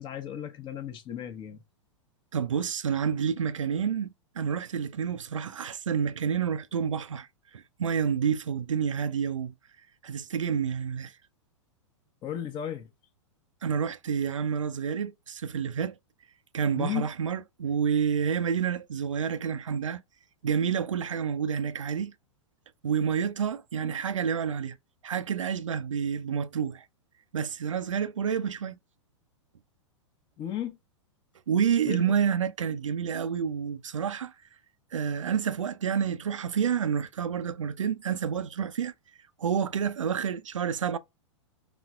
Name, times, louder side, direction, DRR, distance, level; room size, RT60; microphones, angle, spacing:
voice 1, 0.0-1.6 12.2-12.9 16.7-17.1 30.4-30.8 31.9-32.0, left 11 dB, 30° left, 0.8 m, -35 dB
voice 2, 2.3-4.1 4.4-7.3 7.5-9.5 10.0-11.1 13.6-16.0 16.5-20.0 20.4-22.1 22.8-24.8 25.0-26.8 27.3-28.8 31.5-34.3 34.9-38.9 39.4-41.0, right 7 dB, 85° right, 0.4 m, -29 dB
4.2 x 3.2 x 2.3 m
hypercardioid pair, 110°, 16 cm